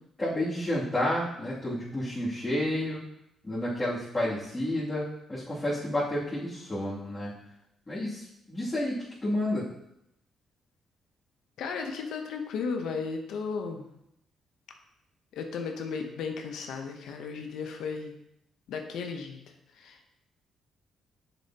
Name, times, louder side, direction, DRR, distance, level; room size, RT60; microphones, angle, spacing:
voice 1, 0.2-3.0 3.4-7.3 7.9-9.7, left 1 dB, 20° left, -11 dB, 2.7 m, -30 dB
voice 2, 11.6-13.9 15.3-18.2 18.7-19.4 19.7-20.0, left 5 dB, 80° left, 4 dB, 0.8 m, -35 dB
7.0 x 6.9 x 2.9 m, 0.79 s
cardioid pair, 90°, 0 cm